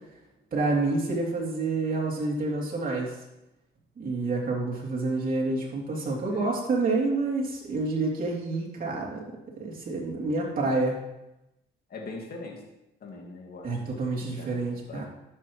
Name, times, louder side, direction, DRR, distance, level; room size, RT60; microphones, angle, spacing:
voice 1, 0.5-3.1 4.0-9.2 9.6-11.0 13.6-15.1, right 3 dB, 45° right, -3 dB, 3.1 m, -28 dB
voice 2, 11.9-12.6 13.0-15.0, left 3 dB, 50° left, 0 dB, 2.1 m, -42 dB
11.5 x 7.8 x 3.2 m, 0.91 s
cardioid pair, 90°, 20 cm